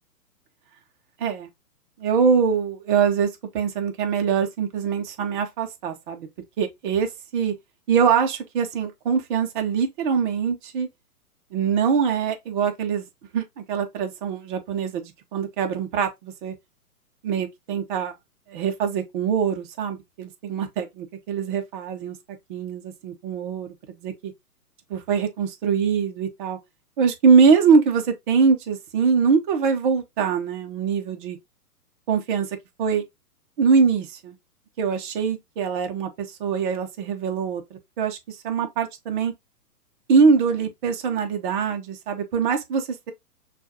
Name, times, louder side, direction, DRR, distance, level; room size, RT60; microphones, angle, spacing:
voice 1, 2.0-6.3 6.6-7.5 7.9-10.9 11.5-13.1 13.3-16.5 17.2-18.1 18.5-22.2 22.5-23.7 24.0-24.3 24.9-26.6 27.0-31.4 32.1-33.0 33.6-34.4 34.8-39.3 40.1-43.1, right 6 dB, 35° right, 0.9 m, -23 dB
6.1 x 2.5 x 2.8 m
figure-of-eight pair, 130°, 46 cm